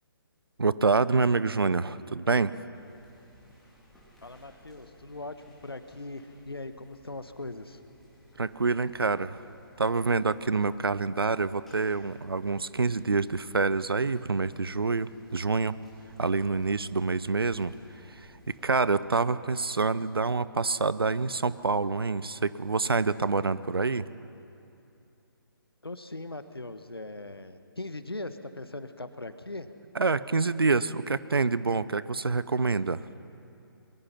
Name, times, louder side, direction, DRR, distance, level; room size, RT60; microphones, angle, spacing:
voice 1, 0.6-2.5 8.4-9.4 9.8-15.8 16.2-17.7 18.1-24.1 29.9-33.0, right 4 dB, 75° right, 17 dB, 0.7 m, -27 dB
sound 1, 2.7-18.9, equal, ahead, 3.4 m, -58 dB
voice 2, 4.2-5.3 5.6-7.8 25.8-29.7, left 2 dB, 80° left, 10 dB, 1.2 m, -40 dB
21.5 x 21.5 x 5.8 m, 2.7 s
figure-of-eight pair, 140°, 13 cm